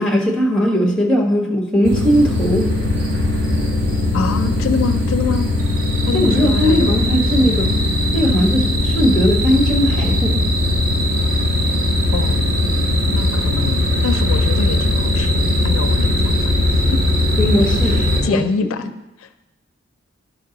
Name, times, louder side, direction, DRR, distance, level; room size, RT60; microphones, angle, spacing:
voice 1, 0.0-2.7 6.1-7.8 8.1-10.4 17.4-18.7, equal, 5° left, 0 dB, 1.0 m, -18 dB
sound 1, 1.8-18.2, left 1 dB, 75° right, 2.6 m, -18 dB
voice 2, 4.1-5.5 6.1-7.0 12.1-12.5 13.1-17.0 17.9-18.8 19.2-19.3, left 5 dB, 80° left, 10 dB, 0.4 m, -25 dB
11.0 x 4.9 x 3.9 m, 0.99 s
head